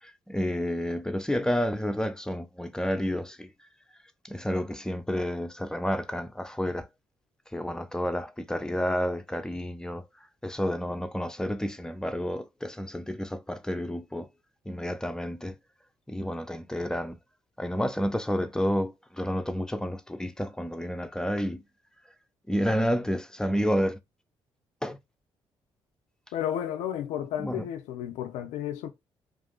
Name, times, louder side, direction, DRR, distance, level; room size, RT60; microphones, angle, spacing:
voice 1, 0.0-3.5 4.2-6.9 7.5-10.1 10.4-14.3 14.7-15.6 16.1-17.2 17.6-21.6 22.5-24.0 24.8-25.0 27.4-27.7, equal, 5° left, 0.6 m, -30 dB
voice 2, 26.3-28.9, left 10 dB, 80° left, 0.5 m, -32 dB
2.6 x 2.5 x 3.6 m
hypercardioid pair, 45°, 12 cm